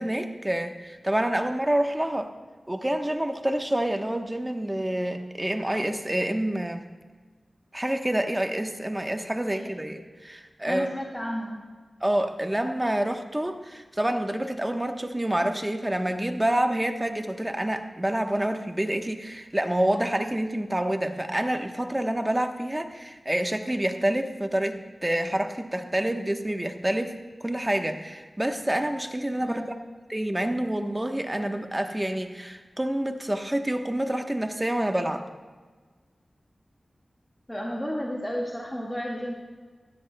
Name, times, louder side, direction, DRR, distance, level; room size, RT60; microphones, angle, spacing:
voice 1, 0.0-2.3 2.7-6.8 7.7-10.9 12.0-27.1 27.4-29.6 30.1-35.2, right 1 dB, 20° right, 5 dB, 1.1 m, -27 dB
voice 2, 10.6-11.7 29.4-29.7 37.5-39.3, equal, 10° left, -3 dB, 1.8 m, -32 dB
16.0 x 16.0 x 2.3 m, 1.4 s
cardioid pair, 50°, 0 cm